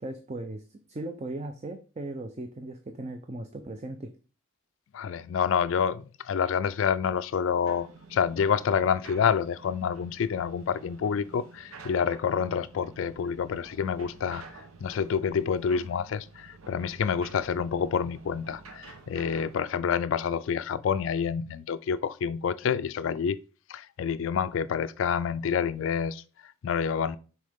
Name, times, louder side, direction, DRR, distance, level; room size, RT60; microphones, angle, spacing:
voice 1, 0.0-4.1, right 2 dB, 30° right, 0.5 m, -38 dB
voice 2, 4.9-23.4 23.7-27.2, left 7 dB, 65° left, 0.3 m, -28 dB
sound 1, 7.7-19.6, right 4 dB, 85° right, 0.9 m, -50 dB
6.4 x 4.3 x 3.6 m
head